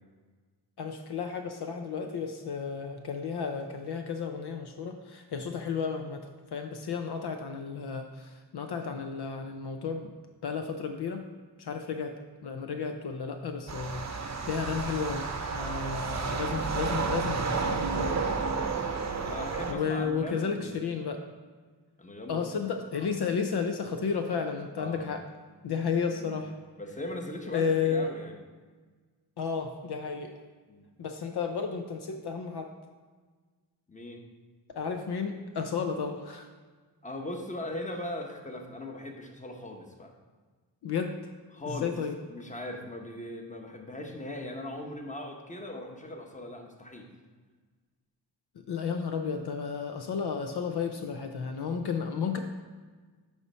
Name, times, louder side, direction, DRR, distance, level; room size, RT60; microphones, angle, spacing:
voice 1, 0.8-6.3 6.5-10.1 10.4-11.2 11.6-12.1 12.4-14.1 14.5-15.2 15.5-18.1 19.7-21.2 22.3-25.2 25.6-26.5 27.5-28.1 29.4-30.3 31.0-32.7 34.7-36.5 40.8-41.1 41.7-42.2 48.7-52.4, left 6 dB, 65° left, 5 dB, 0.6 m, -32 dB
sound 1, 13.7-19.7, right 4 dB, 40° right, 0.8 m, -31 dB
voice 2, 18.9-20.7 22.0-22.6 22.9-23.1 24.8-25.1 26.1-26.4 26.8-28.3 30.7-30.8 33.9-34.2 37.0-40.1 41.5-41.9 42.3-47.1 50.0-50.1, left 1 dB, 15° left, 3 dB, 1.0 m, -39 dB
8.3 x 3.2 x 5.4 m, 1.4 s
cardioid pair, 65°, 43 cm